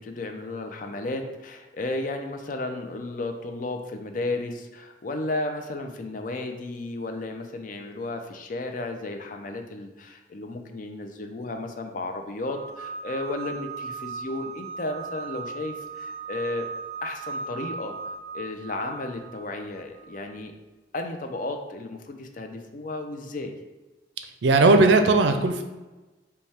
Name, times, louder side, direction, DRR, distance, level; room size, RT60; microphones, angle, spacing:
voice 1, 0.0-16.7 17.0-18.0 18.3-20.5 20.9-23.5, left 2 dB, 50° left, 5 dB, 0.5 m, -33 dB
sound 1, 12.4-20.2, right 5 dB, ahead, 0.8 m, -38 dB
voice 2, 24.4-25.6, right 3 dB, 80° right, 7 dB, 0.4 m, -17 dB
5.3 x 2.2 x 3.4 m, 1.1 s
head